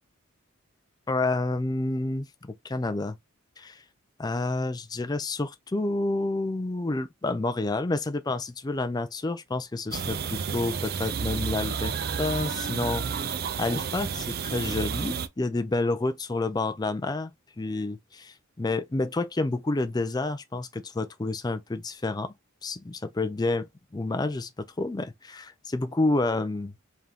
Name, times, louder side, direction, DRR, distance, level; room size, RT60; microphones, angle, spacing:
voice 1, 1.1-3.2 3.6-3.8 4.2-13.2 13.6-17.3 17.6-22.3 22.6-26.9, left 2 dB, 20° left, 0.4 m, -29 dB
sound 1, 9.9-15.3, right 6 dB, 45° right, 0.5 m, -31 dB
3.7 x 3.4 x 2.8 m
head